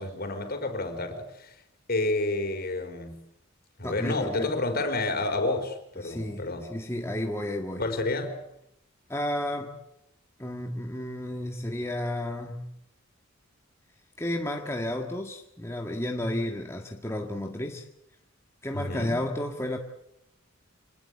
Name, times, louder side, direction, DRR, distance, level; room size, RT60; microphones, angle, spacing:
voice 1, 0.0-1.6 1.9-3.2 3.8-6.7 7.8-8.4 18.7-19.2, left 2 dB, 50° left, 6 dB, 4.9 m, -30 dB
voice 2, 3.8-4.5 6.0-6.4 6.7-7.8 9.1-9.8 10.4-12.7 14.2-17.9 18.6-19.8, left 1 dB, 15° left, 2 dB, 1.8 m, -32 dB
27.0 x 20.5 x 8.4 m, 0.78 s
head